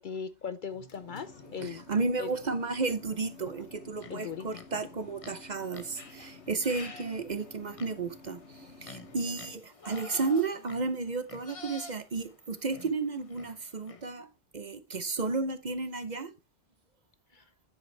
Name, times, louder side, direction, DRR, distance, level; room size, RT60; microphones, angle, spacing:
voice 1, 0.0-1.8 2.2-2.3 4.1-4.5 17.3-17.4, left 6 dB, 55° left, 0.7 m, -38 dB
sound 1, 0.7-9.6, left 4 dB, 80° left, 1.4 m, -52 dB
voice 2, 1.5-8.4 8.8-14.3 14.5-16.3, right 4 dB, 45° right, 0.8 m, -33 dB
sound 2, 4.0-4.7 5.2-14.1, left 3 dB, 30° left, 1.0 m, -49 dB
9.7 x 7.9 x 3.2 m
omnidirectional pair, 1.1 m